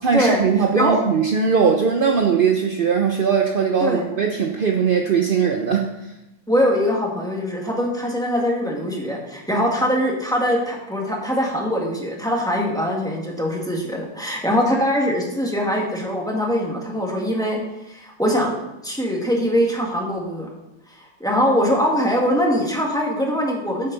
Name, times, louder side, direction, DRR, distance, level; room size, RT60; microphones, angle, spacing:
voice 1, 0.0-5.9, right 6 dB, 60° right, 2 dB, 0.5 m, -19 dB
voice 2, 6.5-17.6 17.9-18.5 18.8-20.5 20.9-23.9, equal, ahead, -1 dB, 1.6 m, -22 dB
10.0 x 7.6 x 3.9 m, 0.95 s
omnidirectional pair, 1.8 m